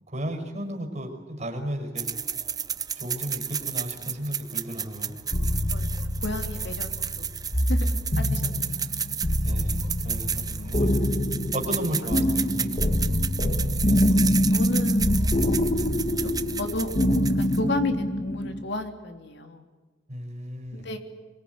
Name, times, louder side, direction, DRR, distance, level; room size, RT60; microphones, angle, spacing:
voice 1, 0.1-2.1 3.0-5.1 9.4-10.9 11.5-13.0 20.1-20.9, right 1 dB, 35° right, 4 dB, 5.6 m, -34 dB
sound 1, 2.0-17.8, right 7 dB, 20° right, 1.0 m, -33 dB
sound 2, 5.3-18.7, left 1 dB, 35° left, 1.6 m, -25 dB
voice 2, 5.7-6.9 7.2-7.3 7.7-8.9 10.6-10.7 14.5-15.6 16.2-17.0 17.3-19.7 20.7-21.0, left 2 dB, 65° left, 5 dB, 3.2 m, -33 dB
25.5 x 23.0 x 9.6 m, 1.3 s
head